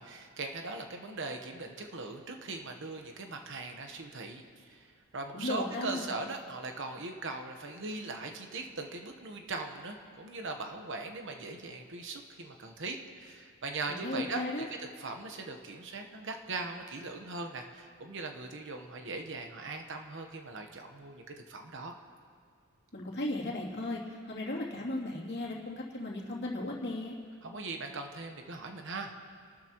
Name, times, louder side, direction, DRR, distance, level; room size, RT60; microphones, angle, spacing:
voice 1, 0.0-4.9 5.1-21.9 27.4-29.2, right 3 dB, 55° right, 4 dB, 1.1 m, -40 dB
voice 2, 5.3-6.1 13.9-14.6 22.9-27.2, left 1 dB, 50° left, -4 dB, 2.8 m, -36 dB
28.5 x 13.0 x 3.0 m, 2.1 s
head